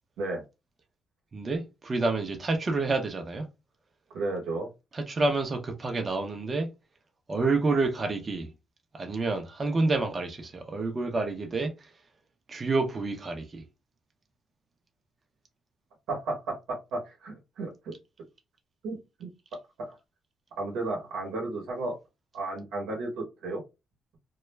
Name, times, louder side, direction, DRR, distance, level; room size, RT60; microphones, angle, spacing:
voice 1, 1.3-3.5 4.9-6.7 7.3-8.5 8.9-11.9 12.5-13.6, right 3 dB, 35° right, 0.6 m, -28 dB
voice 2, 4.1-4.7 16.1-17.9 18.8-19.3 19.8-19.9 20.6-21.9 22.3-23.6, right 2 dB, 85° right, 0.9 m, -33 dB
2.2 x 2.1 x 3.1 m
cardioid pair, 90°, 0 cm